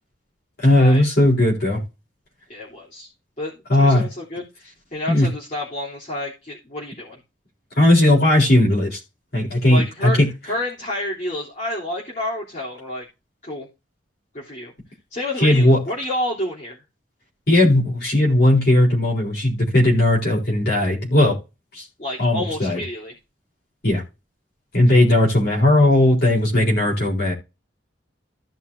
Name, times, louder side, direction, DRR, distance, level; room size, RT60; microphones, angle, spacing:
voice 1, 0.6-1.8 3.7-4.0 5.1-5.3 7.8-9.0 9.3-10.3 15.4-15.8 17.5-21.4 21.7-21.9 22.2-22.8 23.8-24.0 24.7-27.3, left 1 dB, 55° left, 4.1 m, -17 dB
voice 2, 2.5-3.1 3.4-7.2 9.7-10.2 10.4-13.1 13.4-13.7 14.3-14.7 15.1-16.8 22.0-23.2, left 1 dB, 40° left, 3.5 m, -29 dB
15.5 x 5.8 x 2.7 m
head